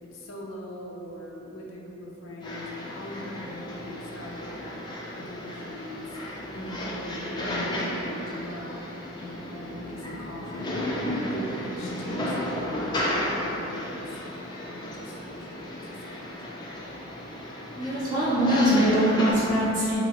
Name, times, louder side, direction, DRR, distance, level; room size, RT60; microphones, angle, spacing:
voice 1, 0.0-4.6 5.2-6.2 6.5-8.9 9.2-16.8, equal, 90° left, -2 dB, 0.5 m, -41 dB
sound 1, 2.4-19.3, left 1 dB, 20° left, 0.3 m, -33 dB
voice 2, 17.7-20.0, equal, 15° right, -14 dB, 0.7 m, -22 dB
2.8 x 2.7 x 2.9 m, 2.9 s
head